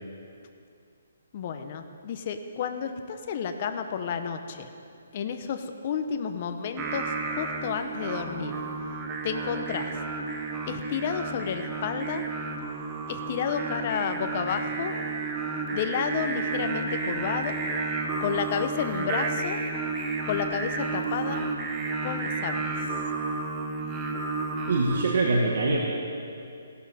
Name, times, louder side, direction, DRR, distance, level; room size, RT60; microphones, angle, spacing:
voice 1, 1.3-4.7 5.1-8.6 9.2-9.9 10.7-12.3 13.1-14.9 15.7-17.6 18.2-19.6 20.3-21.4 22.0-22.7, left 7 dB, 30° left, 7 dB, 0.8 m, -31 dB
Singing, 6.8-25.0, right 4 dB, 15° right, 0.9 m, -32 dB
voice 2, 24.7-25.8, right 2 dB, 55° right, -1 dB, 1.4 m, -23 dB
16.5 x 11.5 x 4.2 m, 2.5 s
hypercardioid pair, 170°, 0 cm